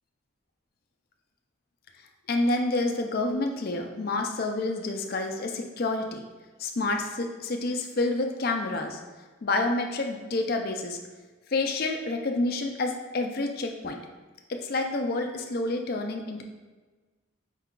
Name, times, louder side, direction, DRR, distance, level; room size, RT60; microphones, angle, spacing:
voice 1, 2.3-6.2 6.6-9.0 9.4-11.0 11.5-14.0 14.5-16.4, left 2 dB, 45° left, 3 dB, 0.4 m, -28 dB
5.3 x 2.3 x 3.7 m, 1.3 s
head